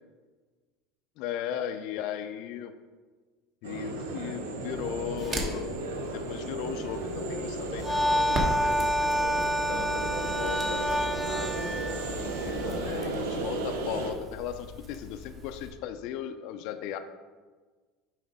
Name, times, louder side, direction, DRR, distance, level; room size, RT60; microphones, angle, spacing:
voice 1, 1.2-2.7 3.6-5.7 6.1-11.7 12.4-17.0, left 10 dB, 65° left, 9 dB, 0.4 m, -37 dB
sound 1, 3.6-14.1, right 3 dB, 90° right, 0.8 m, -34 dB
Crackle, 4.7-15.7, equal, 35° right, 1.3 m, -40 dB
sound 2, 7.8-13.0, equal, 5° left, 0.4 m, -28 dB
7.3 x 4.9 x 3.6 m, 1.4 s
supercardioid pair, 100°, 0 cm